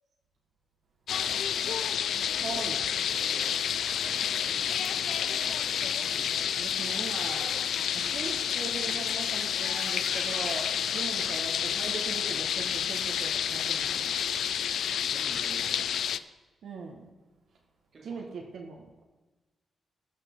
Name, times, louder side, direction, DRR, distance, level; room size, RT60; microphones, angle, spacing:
sound 1, 1.1-16.2, left 8 dB, 75° left, 0.4 m, -29 dB
voice 1, 1.1-1.9 2.8-3.6 4.0-5.8 11.2-11.5 14.9-16.2 17.9-18.3, right 3 dB, 40° right, 1 dB, 2.2 m, -51 dB
voice 2, 2.4-2.8 6.6-7.6 7.9-14.2 16.6-17.1 18.0-19.0, right 4 dB, 70° right, 0 dB, 1.4 m, -40 dB
sound 2, 3.1-3.9 4.6-5.1 5.5-5.9 6.3-6.4 6.7-6.8 7.0-7.1 7.4-7.5 7.8-7.9 8.2-8.7 9.6-11.7 12.0-14.5, left 1 dB, 10° left, 1.1 m, -49 dB
17.0 x 6.7 x 3.8 m, 1.2 s
wide cardioid pair, 165°, 0 cm